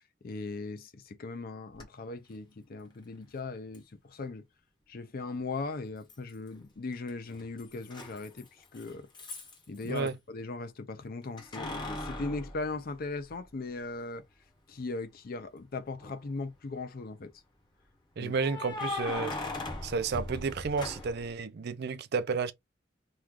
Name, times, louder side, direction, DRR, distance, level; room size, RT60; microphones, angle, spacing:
voice 1, 0.2-4.4 4.9-9.1 9.7-14.2 14.7-17.3 18.2-18.3, left 3 dB, 50° left, 0.5 m, -38 dB
Keys jangling, 1.8-1.9 3.7-3.8 6.1-6.6 6.9-10.1 11.4-13.5 14.0-14.1 15.9-16.4 18.4-21.3, left 2 dB, 25° left, 0.9 m, -39 dB
voice 2, 18.2-19.3 19.8-22.5, right 5 dB, 55° right, 0.4 m, -31 dB
3.1 x 2.3 x 3.5 m
head